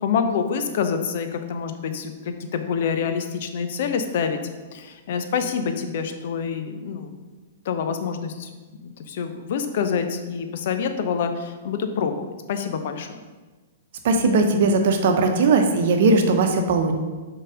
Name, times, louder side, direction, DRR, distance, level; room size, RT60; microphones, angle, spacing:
voice 1, 0.0-4.4 4.7-7.1 7.6-8.5 8.8-13.2, left 6 dB, 60° left, 7 dB, 0.7 m, -27 dB
voice 2, 14.0-17.0, right 3 dB, 60° right, 4 dB, 0.9 m, -19 dB
6.5 x 3.9 x 4.9 m, 1.3 s
hypercardioid pair, 110°, 0 cm